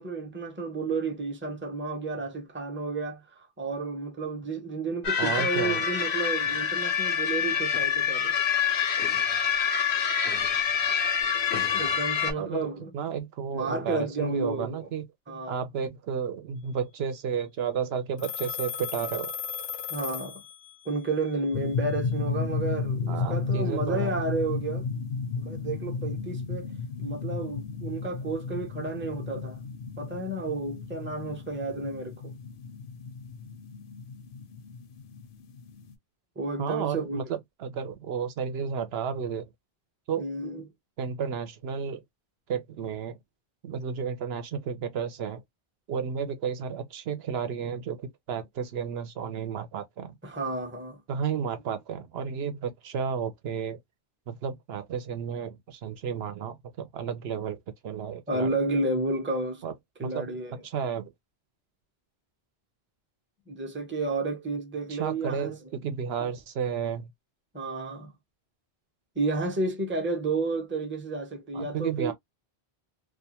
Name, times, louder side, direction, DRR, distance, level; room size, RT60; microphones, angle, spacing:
voice 1, 0.0-8.3 11.7-12.9 13.5-14.9 15.3-15.6 19.9-20.4 20.8-24.9 25.4-26.7 27.0-29.6 30.0-32.3 36.4-37.2 40.2-40.6 50.2-51.0 58.3-59.6 60.0-60.6 63.5-65.6 67.5-68.1 69.2-72.1, right 3 dB, 15° right, 0.6 m, -31 dB
Grallers matinades, 5.0-12.3, left 7 dB, 90° left, 1.0 m, -26 dB
voice 2, 5.2-5.8 12.4-12.6 12.9-15.1 15.5-19.3 23.1-24.1 36.6-39.5 40.1-40.3 41.0-42.0 42.5-43.2 43.6-45.4 45.9-50.2 51.1-53.8 54.3-58.5 59.6-59.7 60.0-60.3 60.6-61.1 64.9-67.1 71.5-72.1, right 7 dB, 75° right, 0.8 m, -32 dB
Telephone, 18.2-20.9, left 7 dB, 35° left, 0.5 m, -36 dB
sound 1, 21.5-35.9, left 4 dB, 65° left, 0.7 m, -33 dB
2.4 x 2.2 x 2.7 m
omnidirectional pair, 1.1 m